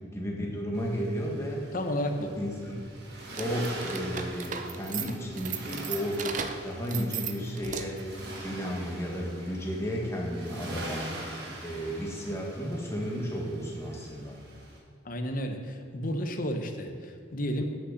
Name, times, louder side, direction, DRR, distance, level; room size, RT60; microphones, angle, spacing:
voice 1, 0.1-1.6 2.4-2.7 3.4-6.2 6.6-8.0 8.4-11.1 11.6-14.4, equal, 15° left, -2 dB, 1.4 m, -33 dB
Accelerating revving vroom, 0.7-14.8, right 1 dB, 55° right, 1.7 m, -44 dB
voice 2, 1.7-2.3 15.0-17.6, equal, 45° left, 5 dB, 0.8 m, -32 dB
sound 1, 3.3-8.1, right 7 dB, 40° right, 0.5 m, -37 dB
8.9 x 5.7 x 6.4 m, 2.3 s
head